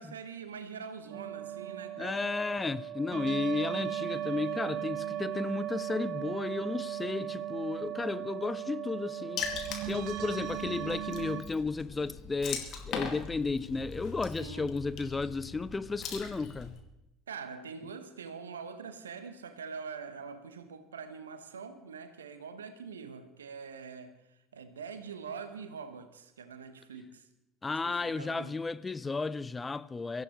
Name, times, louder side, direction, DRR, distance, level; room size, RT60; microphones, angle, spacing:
voice 1, 0.0-2.2 14.4-14.7 17.3-27.3 27.8-28.5, right 5 dB, 80° right, 1.2 m, -44 dB
sound 1, 1.1-11.4, right 11 dB, 55° right, 1.7 m, -37 dB
voice 2, 2.0-9.5 9.9-16.8 27.6-30.2, left 3 dB, 20° left, 0.5 m, -33 dB
Water / Splash splatter, 9.4-16.8, left 6 dB, 50° left, 2.2 m, -41 dB
23.0 x 14.5 x 3.2 m
figure-of-eight pair, 65°, 0 cm